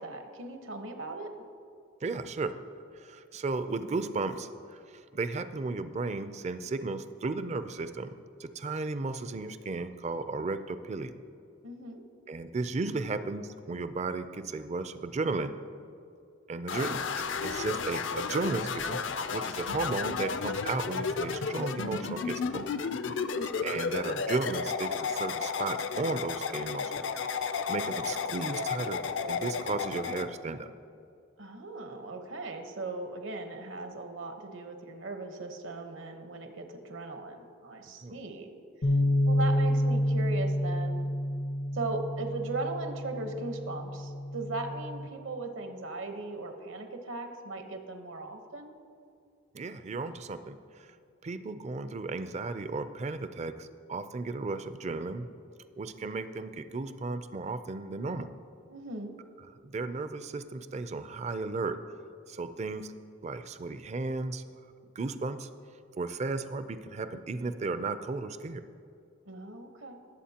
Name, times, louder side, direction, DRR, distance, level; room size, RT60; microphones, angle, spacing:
voice 1, 0.0-1.3 11.6-12.0 23.2-23.6 31.4-38.5 39.3-41.0 41.7-48.7 58.7-59.1 69.3-69.9, right 2 dB, 70° right, 5 dB, 1.1 m, -38 dB
voice 2, 2.0-2.5 2.9-4.8 5.1-11.1 12.3-15.5 16.5-19.0 19.3-22.7 23.6-27.0 27.7-30.7 38.0-38.2 49.5-50.6 51.2-55.3 55.8-58.3 59.6-61.8 62.3-62.9 63.2-64.4 65.0-65.5 66.0-68.6, right 3 dB, 35° right, 11 dB, 0.4 m, -34 dB
sound 1, 16.7-30.3, left 5 dB, 60° left, 0.5 m, -33 dB
sound 2, 38.8-45.1, left 1 dB, 90° left, 1.5 m, -29 dB
19.5 x 7.8 x 2.9 m, 2.4 s
head